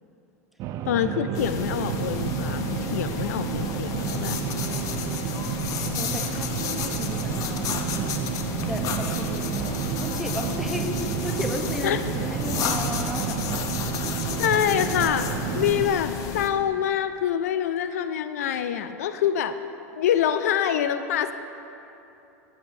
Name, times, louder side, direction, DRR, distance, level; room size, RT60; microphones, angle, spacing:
sound 1, 0.6-15.9, right 10 dB, 40° right, 0.4 m, -31 dB
voice 1, 0.9-4.4 11.8-12.0 14.4-15.3 15.5-19.5 20.0-21.3, left 9 dB, 80° left, 11 dB, 0.3 m, -25 dB
sound 2, 1.3-16.5, left 6 dB, 45° left, 0.7 m, -32 dB
voice 2, 5.9-7.7 8.6-9.7 10.0-13.8 14.2-14.4, equal, ahead, 3 dB, 0.7 m, -34 dB
13.5 x 7.1 x 2.7 m, 2.9 s
hypercardioid pair, 105°, 8 cm